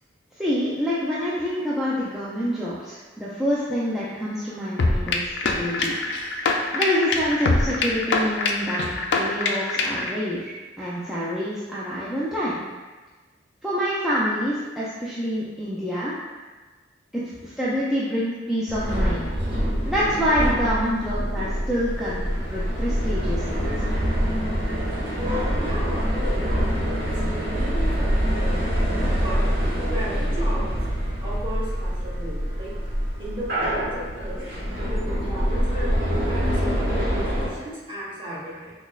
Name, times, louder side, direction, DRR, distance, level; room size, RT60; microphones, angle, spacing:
voice 1, 0.4-6.0 6.7-12.6 13.6-16.2 17.1-19.2 19.6-22.2 22.5-23.9, equal, ahead, -9 dB, 0.4 m, -27 dB
sound 1, 4.8-10.1, left 3 dB, 65° left, 0.4 m, -24 dB
sound 2, 18.7-37.5, equal, 55° right, 1.3 m, -25 dB
voice 2, 25.2-26.9 27.3-29.5 29.8-30.7 31.1-32.7 33.2-34.4 34.9-36.8 37.1-38.7, equal, 30° right, -9 dB, 1.4 m, -35 dB
6.0 x 2.1 x 2.3 m, 1.3 s
head